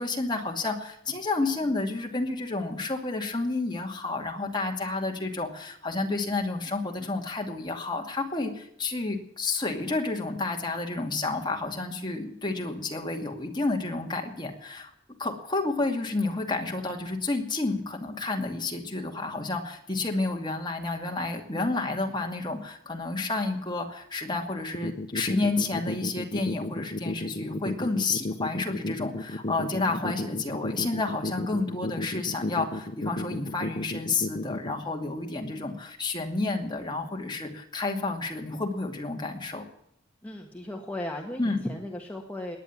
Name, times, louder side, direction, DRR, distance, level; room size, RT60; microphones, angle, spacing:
voice 1, 0.0-14.9 15.2-39.6 41.4-41.6, left 3 dB, 25° left, 2 dB, 2.5 m, -30 dB
sound 1, 24.7-34.7, left 2 dB, 40° left, 0.9 m, -32 dB
voice 2, 40.2-42.6, left 1 dB, 10° left, 0 dB, 1.7 m, -36 dB
18.5 x 10.0 x 7.3 m, 0.72 s
head